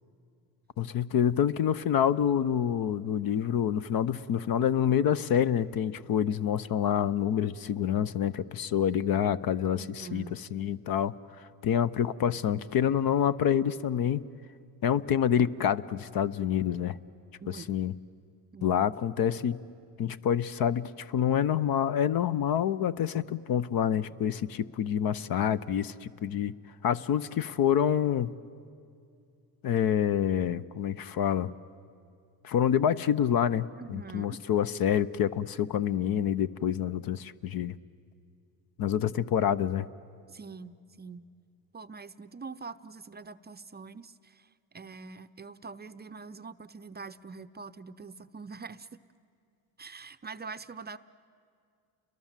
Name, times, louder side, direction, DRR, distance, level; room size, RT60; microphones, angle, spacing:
voice 1, 0.8-10.2 10.5-11.1 11.6-14.2 14.8-17.0 17.7-17.9 18.6-19.6 20.0-26.5 26.8-28.3 29.6-31.5 32.4-37.7 38.8-39.9, left 9 dB, 55° left, 16 dB, 0.8 m, -27 dB
voice 2, 9.7-10.4 17.4-17.7 18.5-18.8 33.8-34.4 40.3-41.3 41.7-44.5 44.7-48.9 49.8-51.0, right 4 dB, 25° right, 11 dB, 0.6 m, -44 dB
30.0 x 22.5 x 7.5 m, 2.4 s
supercardioid pair, 85°, 43 cm